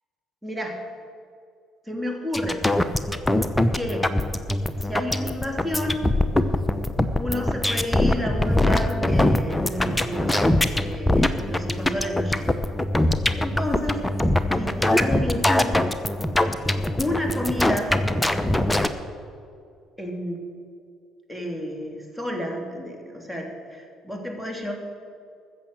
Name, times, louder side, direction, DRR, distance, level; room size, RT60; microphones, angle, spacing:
voice 1, 0.4-0.8 1.9-2.7 3.7-4.1 4.8-6.1 7.2-10.5 10.8-12.6 13.4-14.0 14.5-15.8 17.0-18.0 20.0-20.4 21.3-24.7, left 1 dB, 5° right, 1 dB, 2.9 m, -30 dB
sound 1, 2.3-18.9, left 1 dB, 10° left, 0.8 m, -23 dB
14.5 x 7.2 x 8.0 m, 2.4 s
hypercardioid pair, 50°, 0 cm